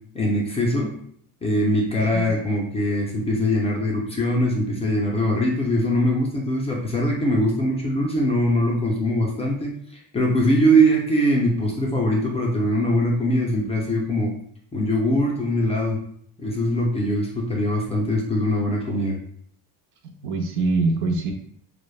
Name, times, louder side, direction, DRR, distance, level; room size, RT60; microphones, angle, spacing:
voice 1, 0.1-0.9 1.4-9.7 10.1-14.3 14.7-16.0 16.4-19.2, equal, 20° left, -2 dB, 0.3 m, -22 dB
voice 2, 20.0-21.3, right 3 dB, 80° right, 3 dB, 0.6 m, -24 dB
3.2 x 2.0 x 2.3 m, 0.64 s
cardioid pair, 140°, 38 cm